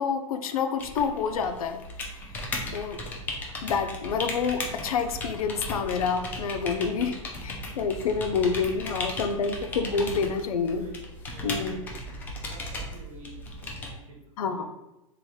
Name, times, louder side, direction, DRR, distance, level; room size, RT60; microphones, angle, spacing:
voice 1, 0.0-1.8 2.1-2.2 2.4-3.0 3.6-10.9 11.4-11.8 14.4-14.7, left 5 dB, 85° left, 8 dB, 0.5 m, -28 dB
sound 1, 0.8-13.9, left 1 dB, 10° left, 0.3 m, -36 dB
voice 2, 10.8-11.9 12.4-14.7, right 2 dB, 70° right, -1 dB, 1.2 m, -50 dB
2.9 x 2.3 x 4.1 m, 0.94 s
hypercardioid pair, 150°, 18 cm